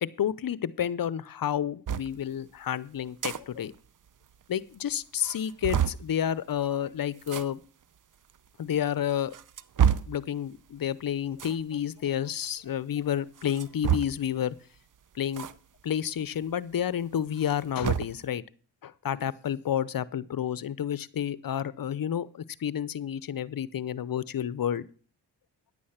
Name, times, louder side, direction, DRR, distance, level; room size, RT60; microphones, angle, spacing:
voice 1, 0.0-3.7 4.5-7.6 8.6-9.3 10.1-14.5 15.2-15.5 15.8-18.4 18.8-24.8, left 9 dB, 55° left, 19 dB, 0.7 m, -30 dB
sound 1, 1.9-2.1 3.0-3.4 3.7-3.8 4.1-4.2 4.7-4.8 5.2-6.1 7.2-7.4 8.3-8.4 9.1-10.2 11.3-11.6 13.4-14.3 15.3-15.5 15.9-16.0 17.3-18.2, right 9 dB, 50° right, 0.7 m, -28 dB
10.5 x 8.5 x 5.7 m, 0.41 s
cardioid pair, 55°, 42 cm